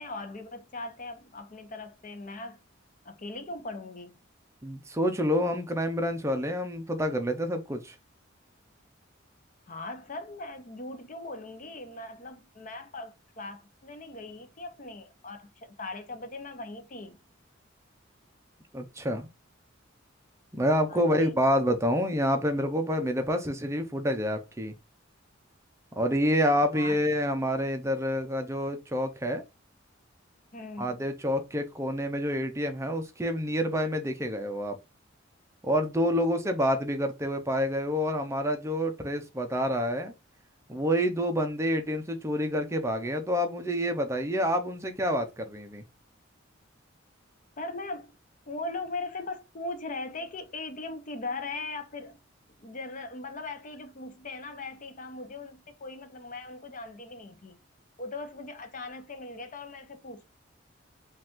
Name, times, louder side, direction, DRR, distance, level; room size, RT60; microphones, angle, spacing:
voice 1, 0.0-2.6 3.0-4.1 9.7-17.2 20.9-21.3 26.7-27.0 30.5-31.0 47.6-48.1 48.5-52.2 52.6-57.6 58.0-60.2, left 2 dB, 40° left, 0.7 m, -39 dB
voice 2, 4.6-7.9 18.7-19.3 20.5-24.7 26.0-29.4 30.8-34.8 35.6-40.1 40.7-45.8, equal, 15° right, 0.6 m, -28 dB
5.1 x 2.5 x 3.6 m
head